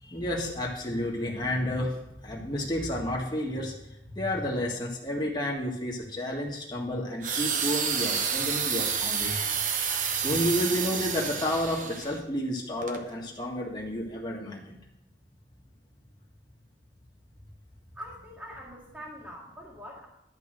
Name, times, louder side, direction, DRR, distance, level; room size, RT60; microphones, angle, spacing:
voice 1, 0.0-9.5 10.1-14.8, left 1 dB, 25° left, -2 dB, 1.7 m, -31 dB
sound 1, 7.2-12.2 12.8-13.0, right 6 dB, 45° right, 0.8 m, -29 dB
voice 2, 17.9-20.1, equal, 10° right, -6 dB, 1.8 m, -43 dB
11.0 x 5.3 x 6.4 m, 0.82 s
head